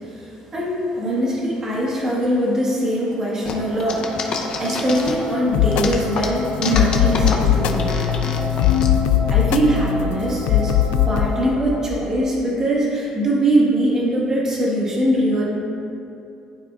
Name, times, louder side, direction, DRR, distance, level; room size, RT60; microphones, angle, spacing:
voice 1, 0.0-8.2 9.3-10.7 11.0-15.4, right 1 dB, 25° right, -5 dB, 1.5 m, -22 dB
sound 1, 3.5-5.3 5.7-8.9, left 5 dB, 40° left, 0.6 m, -28 dB
sound 2, 3.5-11.5, right 1 dB, 50° right, 0.9 m, -31 dB
sound 3, 5.5-11.3, left 11 dB, 80° left, 0.3 m, -20 dB
12.0 x 4.9 x 2.4 m, 2.7 s
cardioid pair, 160°, 2 cm